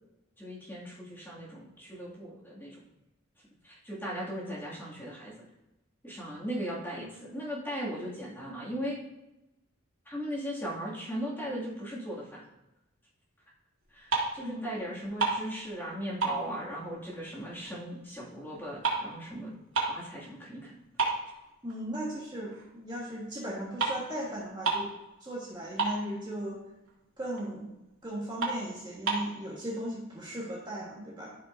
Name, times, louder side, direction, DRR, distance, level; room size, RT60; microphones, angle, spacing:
voice 1, 0.4-2.8 3.6-5.3 6.0-9.0 10.1-12.4 13.9-19.5 19.9-20.7, equal, 10° left, -7 dB, 2.3 m, -38 dB
sound 1, 13.8-14.5 14.8-15.9 16.2-17.7 18.0-20.1 20.5-20.6 21.0-22.1 22.5-22.7 23.5-23.6 23.8-24.0 24.3-24.4 24.6-25.0 25.3-25.4 25.6-26.4 26.8-27.0 27.4-27.5 27.9-28.0 28.4-29.3, right 3 dB, 80° right, 2.6 m, -31 dB
voice 2, 14.4-14.7 21.6-24.9 25.2-26.6 27.2-27.7 28.0-31.3, right 1 dB, 20° right, -5 dB, 1.5 m, -37 dB
14.5 x 5.5 x 2.7 m, 0.96 s
head